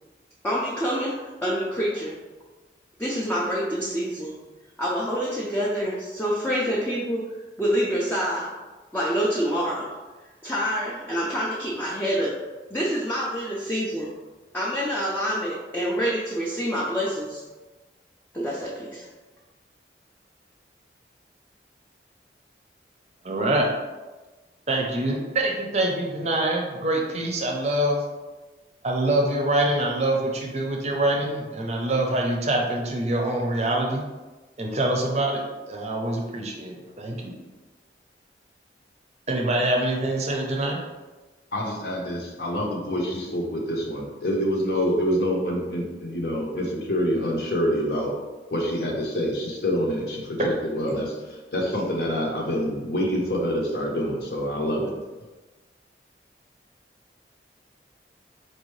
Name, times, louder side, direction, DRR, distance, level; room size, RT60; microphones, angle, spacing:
voice 1, 0.4-2.1 3.0-4.4 4.8-7.3 7.6-8.5 8.9-9.9 10.4-12.4 12.7-14.1 14.5-17.4 18.3-19.1, equal, 10° left, -6 dB, 0.4 m, -27 dB
voice 2, 23.2-23.7 24.7-28.0 28.8-34.0 34.6-35.4 35.7-37.3 39.3-40.8, right 1 dB, 35° right, 0 dB, 0.6 m, -25 dB
voice 3, 41.5-48.1 48.5-54.9, equal, 60° left, -1 dB, 0.8 m, -26 dB
4.4 x 2.6 x 3.1 m, 1.2 s
head